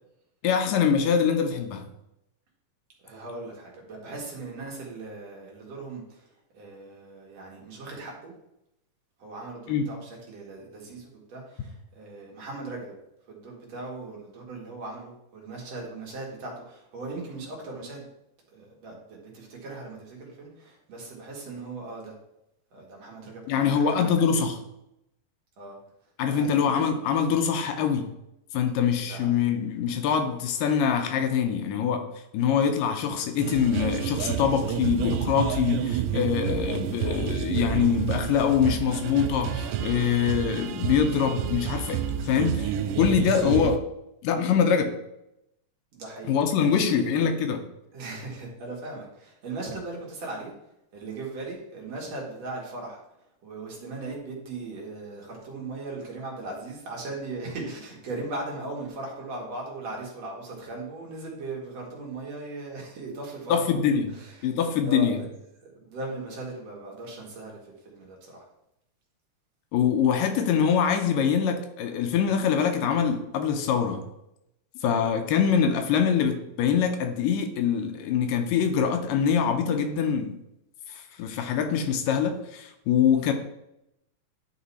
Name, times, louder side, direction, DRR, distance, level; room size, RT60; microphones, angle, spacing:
voice 1, 0.4-1.8 9.7-9.8 23.5-24.6 26.2-28.1 28.5-32.1 32.3-43.8 44.2-44.9 46.3-47.6 63.5-64.1 64.4-65.2 69.7-74.0 74.8-80.4 80.9-83.3, left 7 dB, 80° left, 6 dB, 2.3 m, -24 dB
voice 2, 3.0-8.3 9.2-12.9 13.3-18.1 18.5-22.2 22.7-24.5 25.6-25.8 26.3-26.6 29.0-29.4 45.9-46.3 46.6-47.0 47.9-50.5 50.9-53.0 53.4-64.5 64.8-65.3 65.8-68.5, right 3 dB, 50° right, -2 dB, 2.7 m, -38 dB
sound 1, 33.4-43.8, right 10 dB, 80° right, 2.0 m, -30 dB
11.0 x 3.9 x 4.1 m, 0.83 s
omnidirectional pair, 4.1 m